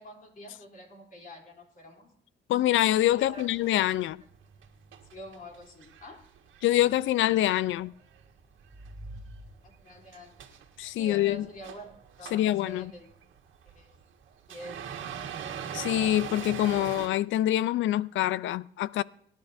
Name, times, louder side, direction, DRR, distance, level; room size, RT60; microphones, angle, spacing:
voice 1, 0.0-2.1 3.0-3.7 5.1-6.2 9.6-10.3 10.9-13.1 13.6-13.9 14.5-14.8, equal, 45° left, 3.3 m, -46 dB
voice 2, 2.5-4.2 6.6-7.9 10.8-11.4 12.3-12.9 15.7-19.0, left 14 dB, 75° left, 0.4 m, -25 dB
sound 1, 2.9-8.3 8.6-17.1, right 8 dB, 80° right, 1.7 m, -43 dB
sound 2, 8.0-10.3, right 1 dB, 5° right, 3.5 m, -48 dB
24.0 x 10.5 x 2.7 m
cardioid pair, 90°, 20 cm